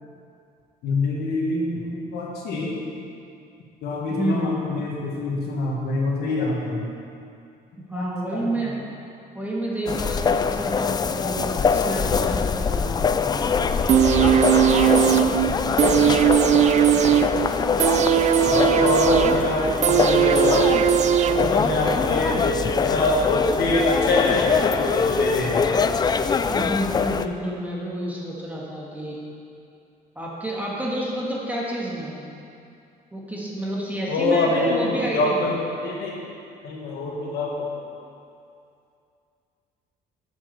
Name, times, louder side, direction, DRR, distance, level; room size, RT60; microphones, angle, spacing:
voice 1, 0.8-2.8 3.8-6.8 7.9-8.8 11.2-11.5 11.7-11.9 18.4-20.7 21.3-25.6 34.1-36.2 36.6-37.7, left 2 dB, 70° left, -2 dB, 1.7 m, -25 dB
voice 2, 4.1-4.5 7.9-8.7 9.3-13.4 26.5-29.2 30.1-32.2 33.1-35.4, right 1 dB, 10° right, -5 dB, 1.7 m, -29 dB
sound 1, 9.9-27.3, left 5 dB, 25° left, 0.3 m, -23 dB
sound 2, 13.0-13.5 13.8-13.9 14.1-14.2 14.5-14.6 14.9-15.0 15.3-15.7 16.0-16.5 16.8-16.9 17.1-17.2 17.5-17.6 17.9-18.0 18.3-18.7 19.0-19.5 19.8-19.9 20.1-20.2 20.5-20.6 20.9-21.0 21.3-21.7 22.0-22.5 22.8-22.9 23.1-23.2 23.5-23.6 23.9-24.0 24.3-24.7, right 4 dB, 25° right, 1.0 m, -44 dB
sound 3, 13.9-21.9 22.2-22.3, right 10 dB, 45° right, 0.4 m, -19 dB
7.5 x 7.3 x 6.8 m, 2.5 s
cardioid pair, 110°, 17 cm